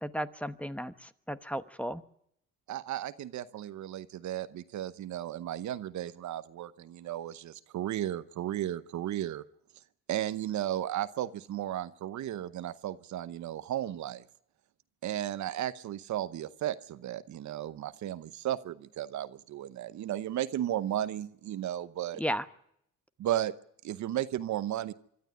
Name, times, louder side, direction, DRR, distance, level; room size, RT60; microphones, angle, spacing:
voice 1, 0.0-2.0 22.2-22.4, equal, 5° left, 12 dB, 1.0 m, -34 dB
voice 2, 2.7-9.4 10.1-14.2 15.0-22.2 23.2-23.5 23.8-24.9, right 12 dB, 70° right, 14 dB, 0.9 m, -34 dB
25.0 x 12.5 x 9.4 m, 0.73 s
cardioid pair, 90°, 30 cm